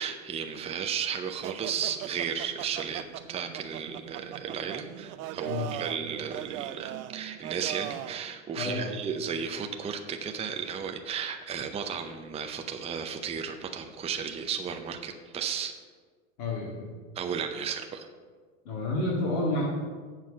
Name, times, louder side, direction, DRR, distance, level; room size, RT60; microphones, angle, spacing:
voice 1, 0.0-15.7 17.1-18.1, right 7 dB, 15° right, 5 dB, 0.5 m, -34 dB
sound 1, 1.4-8.2, right 14 dB, 70° right, 0.5 m, -40 dB
voice 2, 8.6-9.0 16.4-16.9 18.6-19.7, left 2 dB, 70° left, -6 dB, 2.1 m, -30 dB
7.5 x 4.8 x 7.1 m, 1.5 s
supercardioid pair, 110°, 44 cm